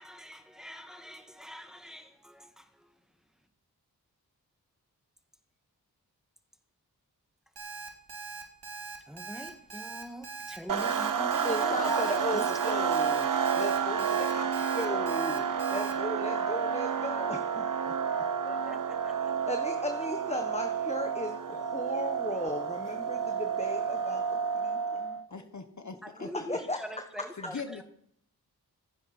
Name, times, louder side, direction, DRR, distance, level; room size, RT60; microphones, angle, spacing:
voice 1, 0.0-2.9 9.1-12.9 18.4-19.2 26.1-27.8, equal, ahead, 2.0 m, -43 dB
Alarm, 7.6-15.9, right 4 dB, 75° right, 2.7 m, -42 dB
sound 1, 10.7-25.2, right 7 dB, 55° right, 0.8 m, -30 dB
voice 2, 11.4-17.9 19.1-24.2 24.5-25.2 26.2-27.5, left 1 dB, 15° left, 1.3 m, -37 dB
voice 3, 25.3-26.5 27.4-27.8, left 5 dB, 45° left, 1.3 m, -41 dB
26.5 x 9.5 x 4.4 m
cardioid pair, 50°, 38 cm